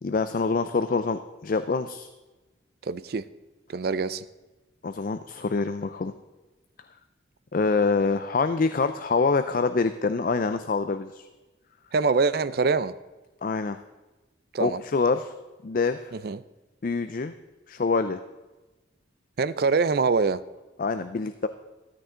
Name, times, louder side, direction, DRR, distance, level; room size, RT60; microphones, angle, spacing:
voice 1, 0.0-2.1 4.8-6.1 7.5-11.3 13.4-13.8 14.6-15.3 15.6-16.1 16.8-17.3 17.7-18.2 20.8-21.5, left 4 dB, 45° left, 10 dB, 0.4 m, -25 dB
voice 2, 2.8-3.2 3.7-4.2 11.9-12.9 14.5-14.8 16.1-16.4 19.4-20.4, right 4 dB, 55° right, 15 dB, 0.4 m, -24 dB
13.5 x 12.5 x 3.8 m, 1.2 s
head